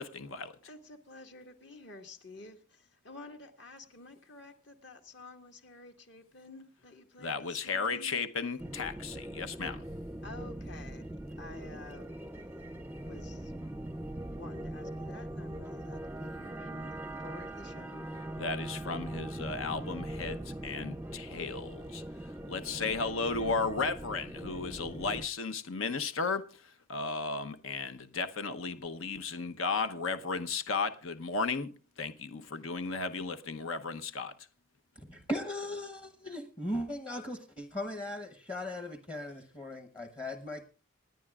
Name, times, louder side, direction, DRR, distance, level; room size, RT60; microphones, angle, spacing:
voice 1, 0.0-0.6 7.2-9.8 18.4-31.7 32.0-34.3, left 4 dB, 85° left, 0.9 m, -35 dB
voice 2, 0.7-8.2 10.2-11.1 11.4-12.1 13.0-13.5 14.3-18.2, left 2 dB, 60° left, 1.8 m, -51 dB
sound 1, 8.6-25.3, right 1 dB, 10° right, 0.5 m, -41 dB
voice 3, 35.0-40.6, left 1 dB, 25° left, 1.0 m, -38 dB
27.0 x 10.0 x 2.4 m
head